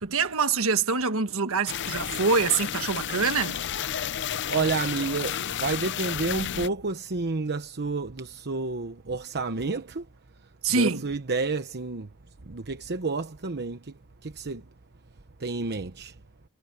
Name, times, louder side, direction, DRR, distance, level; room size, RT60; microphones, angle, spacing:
voice 1, 0.0-3.6 10.6-11.1, right 4 dB, 65° right, 1.5 m, -25 dB
sound 1, 1.7-6.7, left 9 dB, 55° left, 0.6 m, -31 dB
voice 2, 4.5-10.0 10.7-12.1 12.5-13.9 14.2-14.6 15.4-16.1, right 3 dB, 50° right, 1.0 m, -30 dB
head